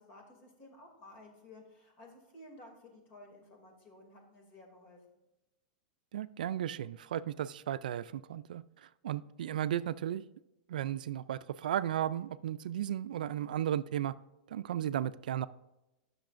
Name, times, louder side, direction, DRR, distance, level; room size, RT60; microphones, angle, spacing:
voice 1, 0.0-5.2, left 1 dB, 40° left, 2 dB, 2.6 m, -55 dB
voice 2, 6.1-10.2 10.7-14.1 14.5-15.5, right 11 dB, 90° right, 15 dB, 0.3 m, -35 dB
15.5 x 6.3 x 2.6 m, 0.97 s
supercardioid pair, 140°, 4 cm